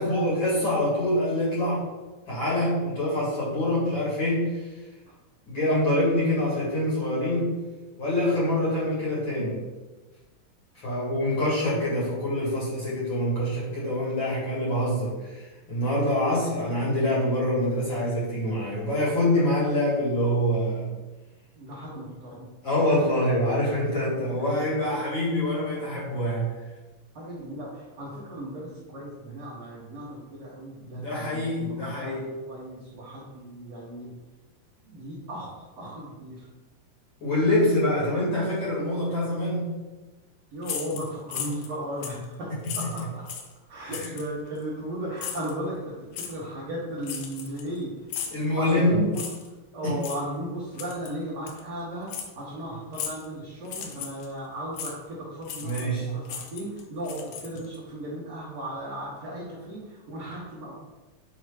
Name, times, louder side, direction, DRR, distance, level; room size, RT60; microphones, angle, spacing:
voice 1, 0.0-1.9 2.3-4.7 5.5-7.6 8.0-9.7 10.7-20.9 22.6-26.6 30.9-32.3 37.2-39.8 42.6-42.9 43.8-44.1 48.3-49.2 49.8-50.0 53.8-54.0 55.6-56.2, left 1 dB, 40° left, -7 dB, 1.9 m, -25 dB
voice 2, 21.5-22.5 27.1-34.1 34.8-36.5 40.5-43.2 43.7-47.9 48.2-49.2 49.7-60.7, right 1 dB, 60° right, -7 dB, 1.7 m, -36 dB
sound 1, 40.6-41.7 42.0-42.2 42.6-43.5 43.9-44.3 45.2-45.5 46.1-46.3 47.0-47.8 48.1-48.4 49.1-49.5 50.0-50.2 50.8-51.1 51.5-51.6 52.1-52.3 52.9-53.3 53.6-54.3 54.8-54.9 55.4-56.0 56.2-57.8, left 8 dB, 80° left, 2.2 m, -36 dB
7.8 x 3.0 x 4.8 m, 1.2 s
omnidirectional pair, 4.6 m